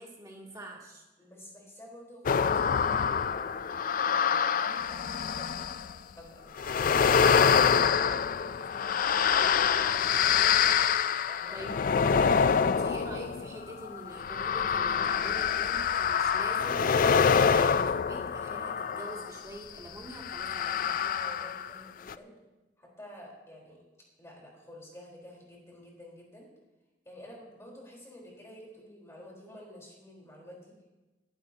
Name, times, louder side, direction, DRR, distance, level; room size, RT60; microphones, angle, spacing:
voice 1, 0.0-1.0 11.5-12.4 12.6-21.0, right 1 dB, 20° right, -2 dB, 2.4 m, -44 dB
voice 2, 1.2-5.6 6.2-8.9 9.3-10.2 11.2-11.7 21.0-22.3 22.8-23.8 24.2-26.5 27.0-30.7, left 1 dB, 15° left, -3 dB, 3.9 m, -50 dB
portal whisper, 2.3-5.9 6.6-19.4 20.2-21.8 22.1-22.2, left 7 dB, 50° left, 0.4 m, -26 dB
22.0 x 11.5 x 2.8 m, 1.1 s
head